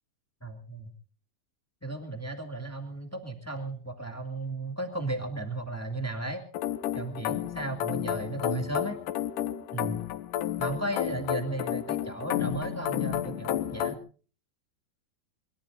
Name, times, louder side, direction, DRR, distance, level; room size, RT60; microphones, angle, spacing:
voice 1, 0.4-0.9 1.8-6.5 6.9-9.0 9.7-10.0 10.6-14.0, right 2 dB, 15° left, 5 dB, 0.5 m, -35 dB
sound 1, 6.5-14.0, left 12 dB, 75° left, 2.1 m, -31 dB
23.5 x 22.5 x 2.5 m, 0.39 s
omnidirectional pair, 4.6 m